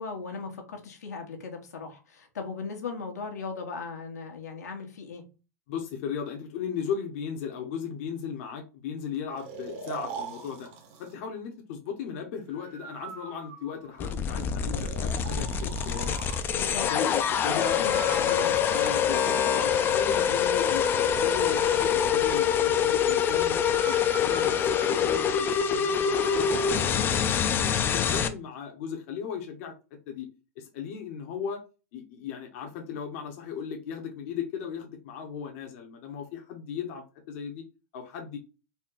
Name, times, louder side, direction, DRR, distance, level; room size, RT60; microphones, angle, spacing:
voice 1, 0.0-5.2 16.5-16.9 17.4-18.6, left 4 dB, 90° left, 1.3 m, -37 dB
voice 2, 5.7-10.7 11.0-16.1 16.5-17.8 18.7-26.7 27.0-29.7 30.1-30.3 30.6-31.6 31.9-37.6 37.9-38.4, left 7 dB, 55° left, 0.9 m, -36 dB
Breathing, 9.4-11.2 12.5-14.2 14.7-16.5 17.9-20.1 20.9-22.1 23.7-26.6, right 5 dB, 50° right, 1.3 m, -43 dB
sound 1, 14.0-28.3, left 8 dB, 25° left, 0.5 m, -25 dB
4.2 x 2.2 x 3.8 m
hypercardioid pair, 125°, 9 cm